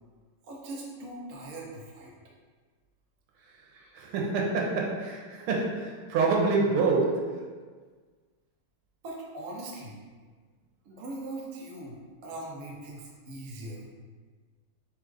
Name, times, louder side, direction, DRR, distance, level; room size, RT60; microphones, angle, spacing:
voice 1, 0.4-2.1 3.7-4.0 9.0-10.0 10.8-13.8, right 2 dB, 55° right, -4 dB, 1.0 m, -41 dB
voice 2, 4.0-7.4, right 3 dB, 85° right, -2 dB, 1.6 m, -27 dB
4.3 x 2.4 x 4.7 m, 1.5 s
omnidirectional pair, 2.3 m